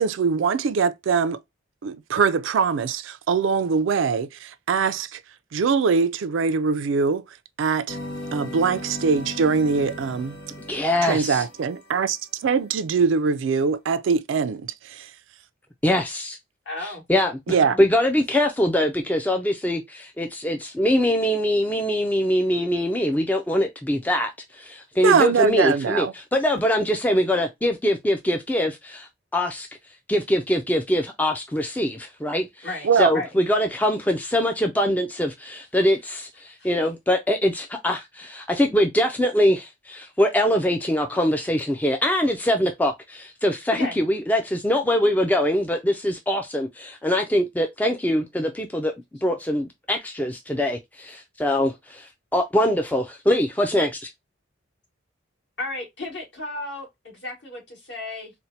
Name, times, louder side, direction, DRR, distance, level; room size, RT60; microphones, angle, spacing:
voice 1, 0.0-1.4 1.8-5.2 5.5-7.2 7.6-8.0 8.3-10.4 11.0-15.1 17.5-17.8 25.0-26.1 32.8-33.1, right 5 dB, 80° right, 0.4 m, -22 dB
sound 1, 7.9-12.1, left 1 dB, 85° left, 1.0 m, -37 dB
voice 2, 10.7-11.4 15.8-16.4 16.8-17.3 17.8-29.7 30.1-32.7 33.0-48.9 49.2-54.1, left 1 dB, 10° left, 0.3 m, -23 dB
voice 3, 16.7-17.0 17.6-17.8 32.6-33.3 36.6-36.7 43.7-43.9 55.6-58.3, left 2 dB, 60° left, 2.0 m, -34 dB
4.3 x 2.1 x 2.6 m
head